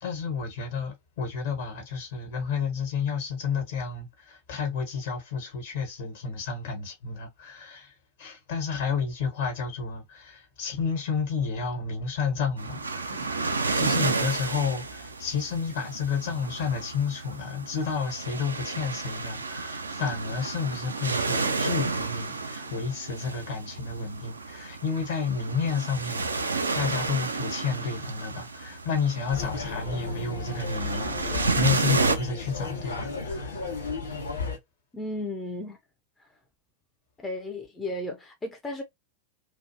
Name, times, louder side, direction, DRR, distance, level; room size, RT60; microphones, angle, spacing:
voice 1, 0.0-7.9 8.2-13.4 13.7-33.6, left 5 dB, 55° left, 1.2 m, -31 dB
sound 1, 12.6-32.2, right 4 dB, 75° right, 0.4 m, -31 dB
sound 2, 29.3-34.6, left 4 dB, 80° left, 0.9 m, -34 dB
voice 2, 34.9-35.8 37.2-38.8, left 1 dB, 15° left, 0.5 m, -34 dB
2.5 x 2.3 x 2.8 m
figure-of-eight pair, 90°, 0 cm